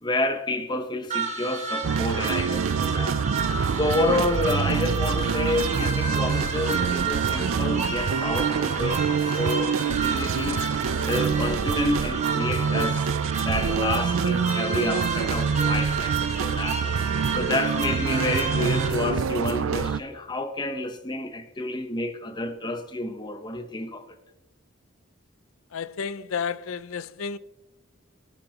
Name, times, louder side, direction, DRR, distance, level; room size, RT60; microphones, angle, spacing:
voice 1, 0.0-3.3 3.6-10.6 11.0-13.0 13.4-16.8 17.3-24.1, left 2 dB, 20° left, 0.9 m, -29 dB
sound 1, 1.1-18.9, right 5 dB, 35° right, 1.4 m, -31 dB
sound 2, 1.8-20.0, right 6 dB, 70° right, 0.4 m, -26 dB
voice 2, 25.7-27.4, left 6 dB, 75° left, 0.5 m, -31 dB
18.5 x 11.5 x 2.9 m
head